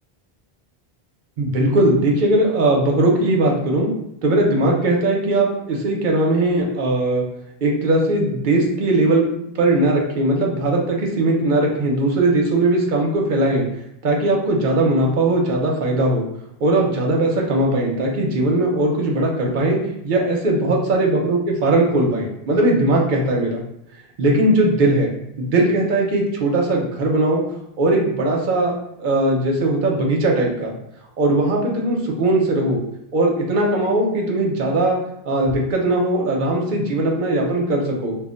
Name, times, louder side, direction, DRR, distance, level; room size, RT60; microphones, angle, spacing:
voice 1, 1.4-3.9 4.2-7.2 7.6-13.6 14.0-16.2 16.6-19.8 20.0-23.6 24.2-25.1 25.4-27.4 27.8-28.7 29.0-30.7 31.2-32.8 33.1-35.0 35.3-38.2, right 2 dB, 60° right, 0 dB, 0.7 m, -19 dB
2.2 x 2.1 x 3.6 m, 0.77 s
omnidirectional pair, 1.0 m